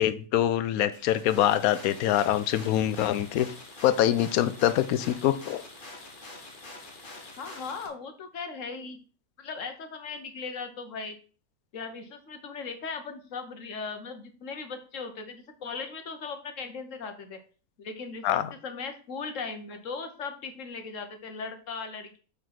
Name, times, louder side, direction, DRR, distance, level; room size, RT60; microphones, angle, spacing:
voice 1, 0.0-3.5 3.8-5.6 18.2-18.5, left 12 dB, 85° left, 13 dB, 1.1 m, -24 dB
sound 1, 0.9-7.9, left 2 dB, 40° left, 1.5 m, -46 dB
voice 2, 7.4-9.0 9.4-11.2 11.7-17.4 17.8-22.2, left 4 dB, 65° left, 8 dB, 1.3 m, -38 dB
5.0 x 4.8 x 5.9 m, 0.39 s
omnidirectional pair, 1.5 m